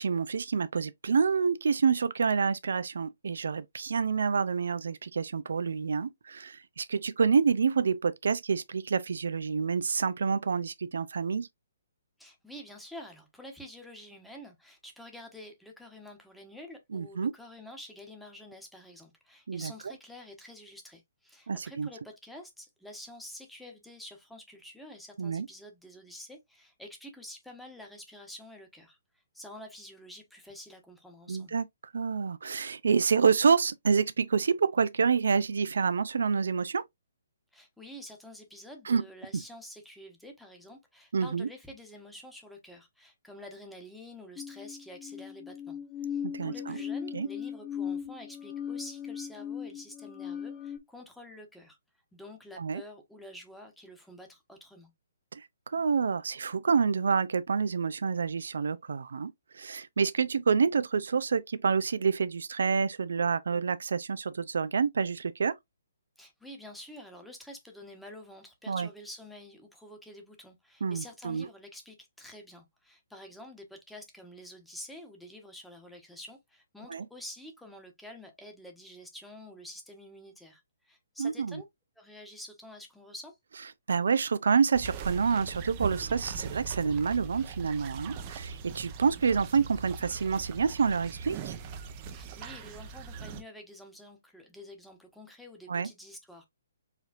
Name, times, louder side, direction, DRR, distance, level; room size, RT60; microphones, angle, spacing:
voice 1, 0.0-11.5 16.9-17.3 19.5-19.7 21.5-21.9 25.2-25.5 31.3-31.6 31.9-36.8 38.9-39.0 41.1-41.5 46.2-46.8 47.1-47.3 52.6-52.8 55.3-65.5 68.7-68.9 70.8-71.5 76.9-77.1 81.2-81.6 83.9-91.5 95.7-95.9, right 5 dB, 70° right, 0.4 m, -28 dB
voice 2, 12.2-29.0 29.3-31.6 37.5-45.8 46.1-51.8 52.1-54.9 66.2-81.6 82.0-83.4 92.1-96.5, left 1 dB, ahead, 1.2 m, -48 dB
sound 1, 44.4-50.8, left 8 dB, 20° left, 0.8 m, -38 dB
sound 2, 84.7-93.4, right 6 dB, 35° right, 0.7 m, -40 dB
4.9 x 3.1 x 2.5 m
figure-of-eight pair, 135°, 0 cm